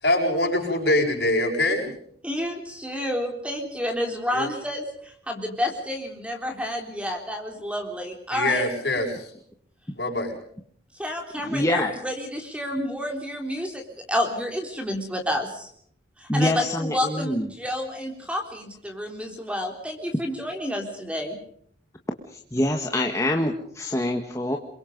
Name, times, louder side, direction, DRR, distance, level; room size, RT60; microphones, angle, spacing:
voice 1, 0.0-1.9 4.3-4.5 8.3-9.3 10.0-10.3, left 1 dB, 60° left, 0 dB, 7.5 m, -23 dB
voice 2, 2.2-4.9 5.3-8.6 11.0-13.8 14.1-15.7 16.2-21.4, equal, 5° right, 3 dB, 3.6 m, -29 dB
voice 3, 11.4-11.9 16.3-17.5 22.3-24.6, left 1 dB, 15° left, 2 dB, 1.6 m, -25 dB
28.0 x 23.0 x 5.4 m, 0.64 s
head